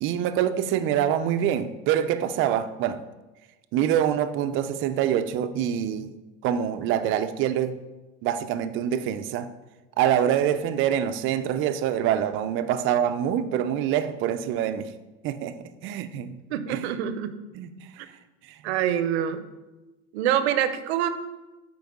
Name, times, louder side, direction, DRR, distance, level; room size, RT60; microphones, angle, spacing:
voice 1, 0.0-3.0 3.7-6.2 6.4-7.8 8.2-9.5 10.0-14.9 15.2-16.4 16.7-16.9 17.5-17.9 18.5-18.7, right 10 dB, 40° right, 0.5 m, -25 dB
voice 2, 16.5-17.3 18.0-18.1 18.6-19.4 20.1-21.1, right 10 dB, 80° right, 0.7 m, -25 dB
7.6 x 4.7 x 3.6 m
supercardioid pair, 130°, 31 cm